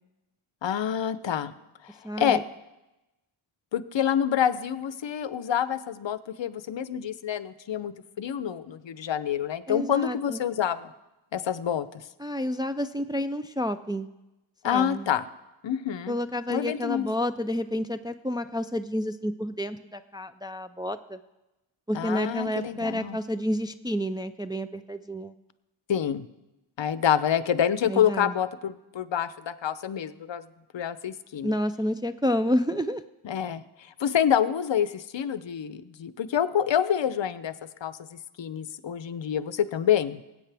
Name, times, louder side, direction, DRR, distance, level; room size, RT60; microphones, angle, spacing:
voice 1, 0.6-1.5 1.8-2.4 3.7-10.9 11.3-12.0 14.6-15.3 15.6-16.2 16.5-17.1 21.9-23.2 25.9-26.3 26.8-30.4 30.7-31.5 33.2-33.6 34.0-37.5 37.8-40.2, left 9 dB, 65° left, 14 dB, 0.7 m, -27 dB
voice 2, 2.0-2.4 9.7-10.4 12.2-14.1 14.6-15.1 16.1-21.2 21.9-25.3 27.9-28.3 31.4-33.0, equal, 10° right, 9 dB, 0.3 m, -29 dB
20.0 x 8.5 x 3.4 m, 0.98 s
wide cardioid pair, 75°, 48 cm